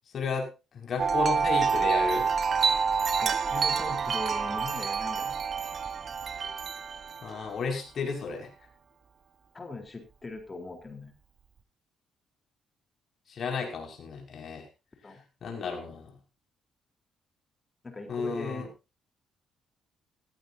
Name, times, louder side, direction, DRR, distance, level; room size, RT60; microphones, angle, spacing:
voice 1, 0.1-2.3 7.2-8.5 13.3-14.7 15.4-16.1 18.1-18.7, left 4 dB, 55° left, 2 dB, 5.9 m, -33 dB
Wind chime, 1.0-7.5, right 6 dB, 50° right, 1.2 m, -27 dB
voice 2, 3.2-5.4 9.5-11.1 15.0-15.2 17.8-18.7, left 3 dB, 25° left, 5 dB, 3.9 m, -40 dB
17.0 x 15.0 x 2.8 m, 0.29 s
cardioid pair, 90°, 0 cm